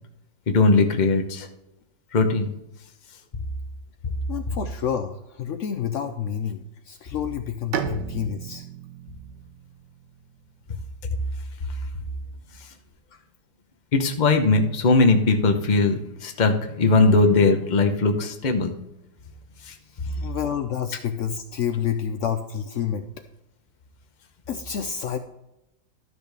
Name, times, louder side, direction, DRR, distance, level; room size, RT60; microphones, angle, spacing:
voice 1, 0.5-1.5 2.1-2.5 13.9-18.7 19.7-19.8, left 3 dB, 40° left, 6 dB, 0.7 m, -19 dB
voice 2, 4.3-8.6 20.2-23.1 24.5-25.2, left 8 dB, 85° left, 7 dB, 0.6 m, -29 dB
Bowed string instrument, 7.7-11.3, right 9 dB, 70° right, 1.4 m, -36 dB
12.5 x 6.2 x 3.4 m, 0.88 s
omnidirectional pair, 2.0 m